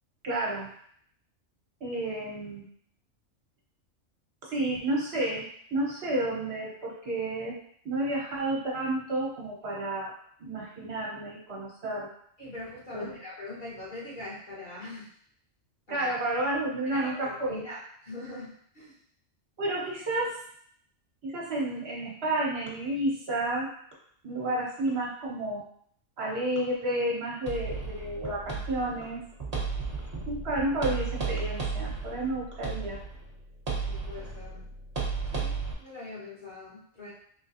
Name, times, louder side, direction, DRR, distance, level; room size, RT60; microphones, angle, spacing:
voice 1, 0.2-0.7 1.8-2.6 4.4-5.4 5.7-7.5 7.8-10.1 10.4-12.1 12.9-13.1 15.9-17.6 19.6-20.3 21.2-23.7 24.2-25.6 26.2-29.2 30.3-33.0, right 1 dB, 55° right, -4 dB, 1.5 m, -31 dB
voice 2, 12.4-15.1 15.9-16.1 16.8-18.9 33.8-34.7 35.3-37.1, left 2 dB, 40° left, -9 dB, 1.8 m, -42 dB
sound 1, 27.5-35.7, right 4 dB, 35° right, 1.0 m, -34 dB
3.9 x 3.7 x 2.7 m, 0.64 s
omnidirectional pair, 1.3 m